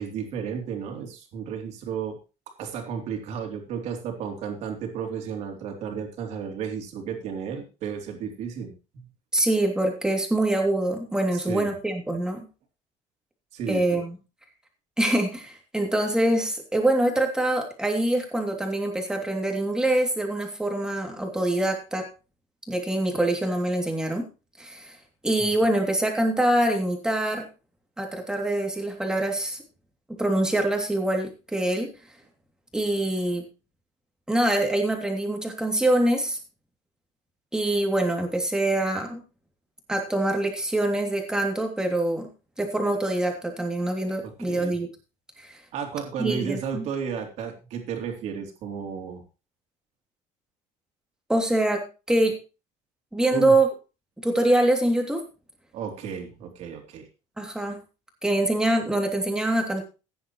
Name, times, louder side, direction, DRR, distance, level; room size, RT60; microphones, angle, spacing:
voice 1, 0.0-2.2 2.6-9.1 11.3-11.7 13.5-14.0 25.4-25.5 44.2-44.8 45.7-49.2 53.3-53.5 55.7-57.0, right 7 dB, 60° right, 3 dB, 3.5 m, -33 dB
voice 2, 9.3-12.4 13.7-14.2 15.0-22.1 22.7-24.2 24.6-25.0 25.2-27.5 28.0-29.6 30.2-31.9 32.7-33.5 34.3-36.4 37.5-39.2 39.9-42.3 42.6-44.9 45.4-45.6 46.2-46.8 51.3-52.3 53.1-53.7 54.2-55.2 57.4-57.8 58.2-59.8, right 1 dB, 5° right, 2 dB, 2.8 m, -24 dB
15.5 x 10.0 x 3.2 m, 0.32 s
cardioid pair, 145°, 13 cm